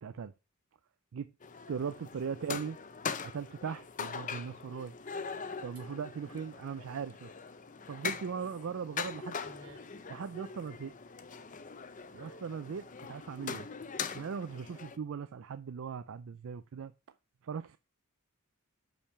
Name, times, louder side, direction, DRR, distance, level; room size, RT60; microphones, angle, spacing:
voice 1, 0.0-0.3 1.1-1.3 1.7-2.8 3.2-4.9 5.6-7.3 7.9-9.3 10.1-10.9 12.1-13.7 14.1-16.9 17.4-17.8, right 6 dB, 60° right, 0.4 m, -39 dB
sound 1, 1.4-15.0, left 6 dB, 35° left, 0.6 m, -42 dB
voice 2, 2.4-2.7 8.9-9.9 12.2-12.4, right 1 dB, 85° right, 3.5 m, -54 dB
6.6 x 5.8 x 5.7 m
head